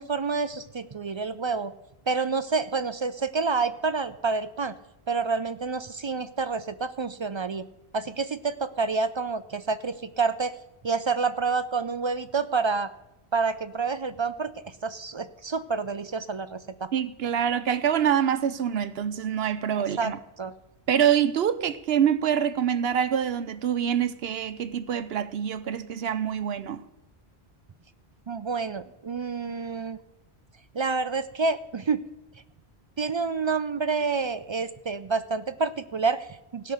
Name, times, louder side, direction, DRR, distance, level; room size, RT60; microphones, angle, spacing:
voice 1, 0.0-1.7 2.1-4.7 5.1-7.6 7.9-10.5 10.8-12.9 13.3-16.9 20.0-20.1 20.4-20.5 28.3-30.0 30.7-32.0 33.0-36.7, right 4 dB, 50° right, 0.3 m, -28 dB
voice 2, 16.9-20.2 20.9-26.8, right 9 dB, 70° right, 0.9 m, -25 dB
16.5 x 5.9 x 6.4 m
omnidirectional pair, 1.1 m